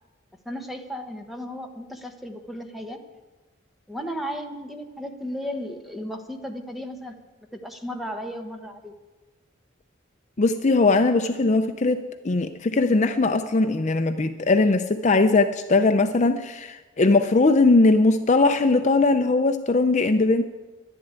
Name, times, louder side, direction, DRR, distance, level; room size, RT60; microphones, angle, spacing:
voice 1, 0.4-3.0 3.9-7.1 7.5-8.9, equal, ahead, 4 dB, 1.1 m, -34 dB
voice 2, 10.4-20.4, left 3 dB, 35° left, 8 dB, 0.5 m, -20 dB
11.0 x 11.0 x 9.5 m, 1.2 s
head